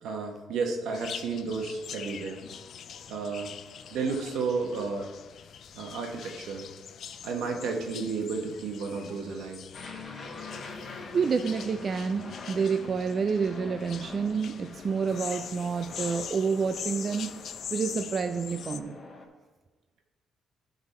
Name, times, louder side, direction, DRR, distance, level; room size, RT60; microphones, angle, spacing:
voice 1, 0.0-2.4 3.1-3.6 3.9-5.1 5.7-6.7 7.2-9.6, right 4 dB, 85° right, 2 dB, 1.2 m, -32 dB
sound 1, 0.9-18.8, left 8 dB, 65° left, 0.4 m, -43 dB
Aircraft, 9.7-19.3, left 3 dB, 40° left, 1.3 m, -44 dB
voice 2, 11.1-19.0, right 5 dB, 45° right, 7 dB, 0.4 m, -29 dB
11.5 x 4.0 x 4.2 m, 1.2 s
cardioid pair, 90°, 0 cm